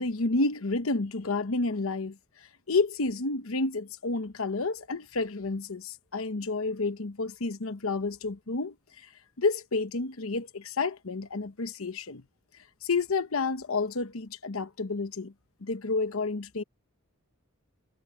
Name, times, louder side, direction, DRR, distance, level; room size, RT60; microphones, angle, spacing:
voice 1, 0.0-9.1 9.4-12.2 12.8-15.3 15.6-16.6, left 3 dB, 75° left, 1.0 m, -30 dB
head